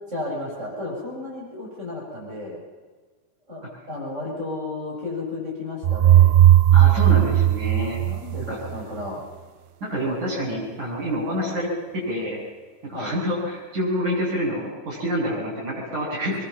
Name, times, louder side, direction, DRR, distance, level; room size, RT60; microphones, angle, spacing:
voice 1, 0.1-2.6 3.5-6.3 7.2-7.3 8.0-9.2 12.9-13.1, left 2 dB, 15° right, -4 dB, 8.1 m, -33 dB
sound 1, 5.8-8.7, right 13 dB, 75° right, 2.3 m, -16 dB
voice 2, 6.7-8.0 8.5-8.6 9.8-12.4 12.8-16.4, equal, 40° right, -3 dB, 8.8 m, -27 dB
25.5 x 23.0 x 7.5 m, 1.4 s
omnidirectional pair, 5.3 m